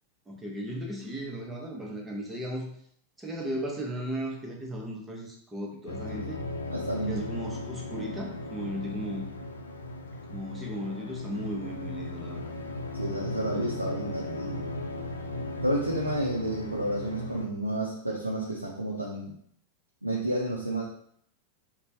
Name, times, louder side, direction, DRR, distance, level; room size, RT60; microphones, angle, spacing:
voice 1, 0.3-2.7 3.2-6.4 7.1-9.3 10.3-12.5, equal, 10° right, -1 dB, 0.8 m, -36 dB
sound 1, 5.9-17.5, left 2 dB, 70° left, 0.3 m, -37 dB
voice 2, 6.7-7.2 12.9-14.7 15.6-19.3 20.0-20.9, right 1 dB, 85° right, -3 dB, 0.5 m, -31 dB
4.2 x 2.2 x 2.8 m, 0.65 s
figure-of-eight pair, 90°, 0 cm